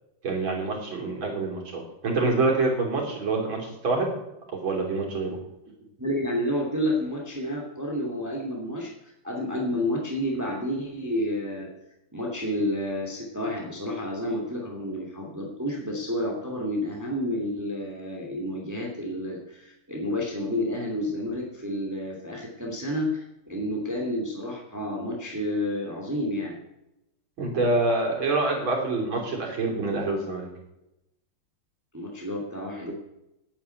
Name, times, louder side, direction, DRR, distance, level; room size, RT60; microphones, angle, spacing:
voice 1, 0.2-4.1 4.6-5.3 27.4-30.5, right 3 dB, 65° right, -1 dB, 3.9 m, -26 dB
voice 2, 6.0-11.7 12.1-26.6 31.9-32.9, left 1 dB, 10° right, -1 dB, 2.2 m, -30 dB
9.2 x 9.1 x 9.1 m, 0.89 s
omnidirectional pair, 2.4 m